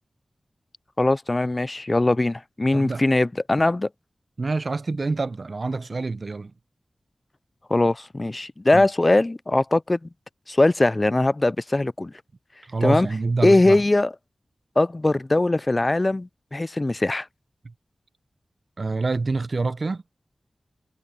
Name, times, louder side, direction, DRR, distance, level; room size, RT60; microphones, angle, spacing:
voice 1, 1.0-3.9 7.7-10.0 10.5-12.1 12.8-13.1 13.4-14.1 14.8-17.3, left 2 dB, 35° left, 0.3 m, -21 dB
voice 2, 2.7-3.0 4.4-6.5 8.7-8.9 12.7-13.8 17.6-17.7 18.8-20.0, right 3 dB, 60° right, 0.8 m, -26 dB
cardioid pair, 50°, 0 cm